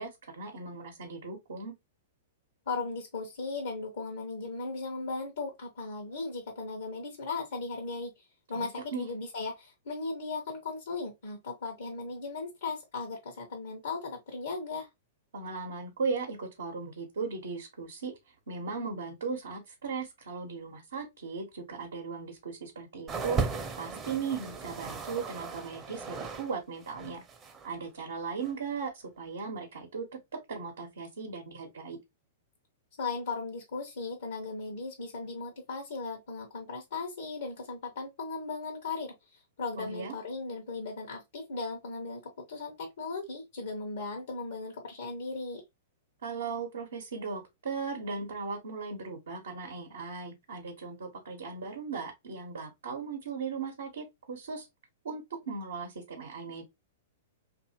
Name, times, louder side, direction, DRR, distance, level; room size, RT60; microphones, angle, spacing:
voice 1, 0.0-1.7 8.5-9.1 15.3-18.1 18.5-23.4 23.8-27.2 27.6-30.1 30.5-32.0 39.8-40.1 46.2-54.7 55.0-56.7, right 5 dB, 75° right, 0.8 m, -37 dB
voice 2, 2.7-14.9 33.0-45.6, left 4 dB, 70° left, 0.8 m, -37 dB
sound 1, 23.1-26.5 26.8-27.7 28.4-28.5, right 4 dB, 25° right, 0.6 m, -36 dB
2.7 x 2.5 x 2.7 m
hypercardioid pair, 110°, 0 cm